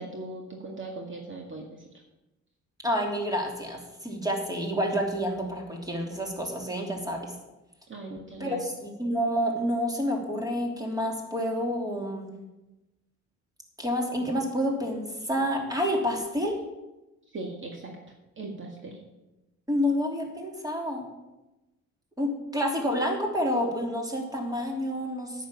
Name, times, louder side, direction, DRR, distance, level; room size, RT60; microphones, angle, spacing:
voice 1, 0.0-1.7 7.9-8.6 17.3-18.0 18.4-19.0, right 2 dB, 40° right, 1 dB, 1.9 m, -38 dB
voice 2, 2.8-7.3 8.4-12.4 13.8-16.6 19.7-21.1 22.2-25.5, equal, 10° right, 1 dB, 3.0 m, -29 dB
9.2 x 6.7 x 8.6 m, 1.0 s
cardioid pair, 90°, 30 cm